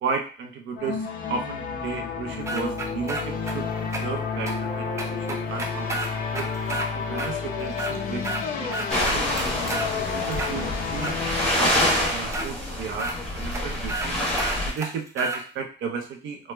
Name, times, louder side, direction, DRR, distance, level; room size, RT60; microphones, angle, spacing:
voice 1, 0.0-6.5 6.9-8.3 8.6-9.5 9.9-11.2 11.6-11.8 12.1-13.1 13.4-14.2 14.6-16.5, right 5 dB, 75° right, 4 dB, 0.6 m, -34 dB
sound 1, 0.8-12.1, left 5 dB, 50° left, 0.5 m, -30 dB
sound 2, 2.5-3.5 3.9-4.0 4.5-4.6 5.0-6.9 7.2-7.3 7.7-8.4 8.7-9.9 10.3-11.2 11.7-11.8 12.3-12.5 13.0-13.1 13.5-13.6 13.9-14.1 14.4-15.4, right 2 dB, 15° right, 0.4 m, -31 dB
sound 3, 8.9-14.7, left 1 dB, 5° left, 1.1 m, -27 dB
3.1 x 2.0 x 3.3 m, 0.38 s
cardioid pair, 165°, 19 cm